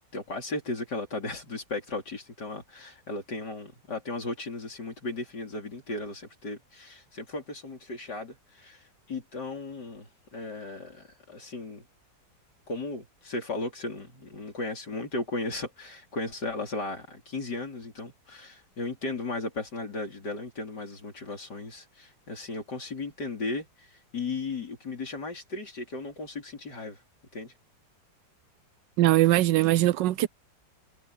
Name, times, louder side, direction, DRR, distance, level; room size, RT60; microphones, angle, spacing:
voice 1, 0.1-11.8 12.7-27.0 27.3-27.5, left 3 dB, 60° left, 4.8 m, -36 dB
voice 2, 29.0-30.3, right 15 dB, 75° right, 1.2 m, -21 dB
omnidirectional pair, 2.1 m